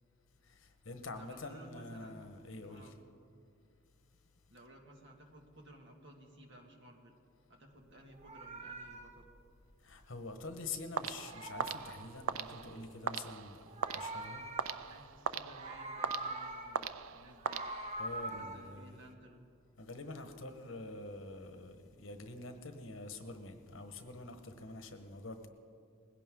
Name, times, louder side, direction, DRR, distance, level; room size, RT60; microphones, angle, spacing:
voice 1, 0.4-3.0 9.8-14.4 18.0-19.0 19.8-25.5, left 2 dB, 70° left, 1.3 m, -46 dB
voice 2, 1.2-2.2 2.7-3.0 4.5-7.1 7.5-9.3 14.8-17.6 18.2-19.5, right 1 dB, 60° right, 2.1 m, -56 dB
Meow, 8.0-10.7 11.0-12.7 13.5-15.1 15.4-16.9 17.2-18.5, right 2 dB, 35° right, 1.1 m, -44 dB
sound 1, 11.0-18.2, right 7 dB, 90° right, 0.5 m, -41 dB
20.5 x 16.5 x 3.8 m
head